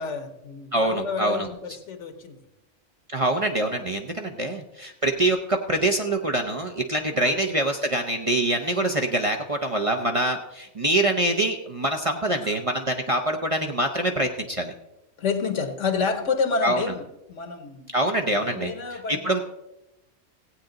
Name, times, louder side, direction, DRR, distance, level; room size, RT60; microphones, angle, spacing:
voice 1, 0.0-2.4 3.7-3.8 7.2-7.3 12.4-12.6 15.2-17.9 18.5-19.4, left 5 dB, 75° left, 8 dB, 1.4 m, -29 dB
voice 2, 0.7-1.5 3.1-14.7 16.6-16.8 17.9-19.4, right 1 dB, 35° right, 4 dB, 0.6 m, -25 dB
16.0 x 8.6 x 3.9 m, 0.91 s
omnidirectional pair, 1.3 m